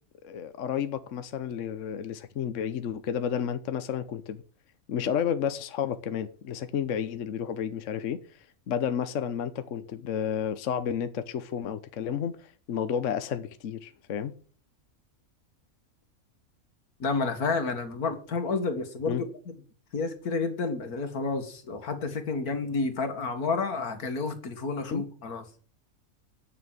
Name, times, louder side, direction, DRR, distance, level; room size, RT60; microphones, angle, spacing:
voice 1, 0.2-4.4 4.9-14.3 19.1-19.2 24.9-25.0, left 8 dB, 60° left, 1.1 m, -31 dB
voice 2, 17.0-19.5 19.9-25.4, left 4 dB, 85° left, 2.2 m, -30 dB
9.9 x 6.2 x 8.8 m
omnidirectional pair, 1.5 m